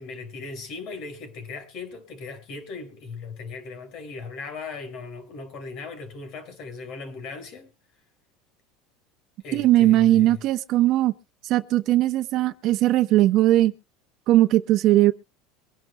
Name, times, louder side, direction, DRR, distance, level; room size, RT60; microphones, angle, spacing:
voice 1, 0.0-7.7 9.4-10.4, left 4 dB, 55° left, 5.0 m, -38 dB
voice 2, 9.5-11.1 11.4-13.7 14.3-15.1, right 15 dB, 55° right, 0.9 m, -19 dB
24.0 x 11.0 x 2.2 m
supercardioid pair, 125°, 0 cm